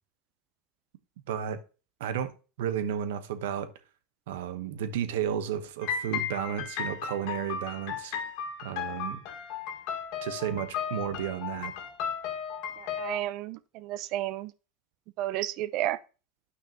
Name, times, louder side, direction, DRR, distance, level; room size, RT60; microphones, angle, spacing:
voice 1, 1.3-1.6 2.0-2.3 2.6-3.7 4.3-8.1 8.6-9.2 10.2-11.7, right 9 dB, 80° right, 1.0 m, -32 dB
sound 1, 5.8-13.2, left 7 dB, 60° left, 1.7 m, -35 dB
voice 2, 12.8-14.5 15.2-16.0, right 14 dB, 55° right, 0.6 m, -32 dB
9.6 x 5.9 x 2.9 m
supercardioid pair, 115°, 0 cm